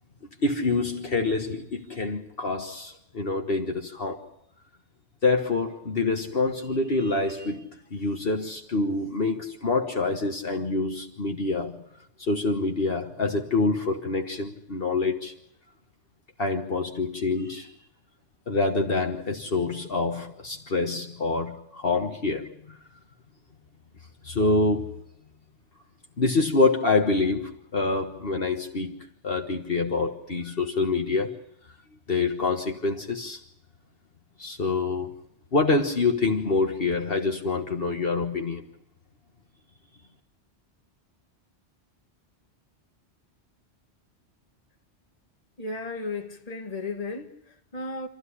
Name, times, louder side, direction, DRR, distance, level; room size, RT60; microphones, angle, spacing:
voice 1, 0.4-4.3 5.2-11.8 12.2-15.3 16.4-17.7 18.5-22.8 24.2-24.9 26.2-29.0 29.2-31.4 32.1-33.4 34.4-35.1 35.5-38.7, left 3 dB, 55° left, 1.6 m, -26 dB
voice 2, 45.6-48.1, left 3 dB, 35° left, 1.8 m, -34 dB
27.0 x 13.5 x 9.9 m
omnidirectional pair, 1.2 m